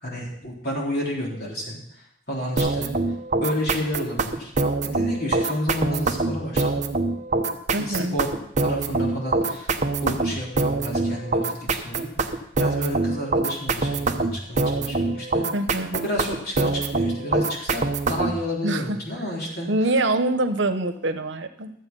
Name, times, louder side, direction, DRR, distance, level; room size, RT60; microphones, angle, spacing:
voice 1, 0.0-1.8 2.3-2.9 3.4-4.5 4.8-6.8 7.7-9.7 10.0-15.5 15.9-19.7, equal, 55° left, -3 dB, 3.7 m, -31 dB
sound 1, 2.6-18.4, right 3 dB, 40° right, 0.8 m, -24 dB
voice 2, 7.7-8.1 15.5-16.0 18.6-19.0 19.7-21.7, right 2 dB, 85° right, 8 dB, 1.0 m, -24 dB
13.0 x 7.9 x 5.4 m, 0.73 s
head